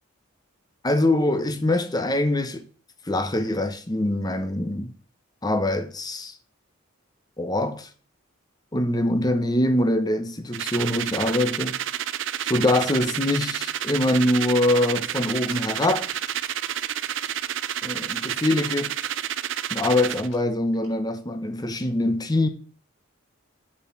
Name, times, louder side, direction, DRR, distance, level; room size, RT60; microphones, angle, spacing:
voice 1, 0.8-2.7 3.1-4.9 5.4-6.3 7.4-7.9 8.7-11.8 12.4-16.1 17.8-19.0 19.7-22.5, left 1 dB, 20° left, 0.9 m, -24 dB
sound 1, 10.5-20.3, right 10 dB, 60° right, 0.5 m, -30 dB
sound 2, 15.1-15.6 15.9-16.8 17.1-18.7 19.0-19.3 19.5-19.6 19.9-20.0 20.2-20.4 20.7-20.9, left 3 dB, 60° left, 5.4 m, -47 dB
8.6 x 4.9 x 6.9 m
head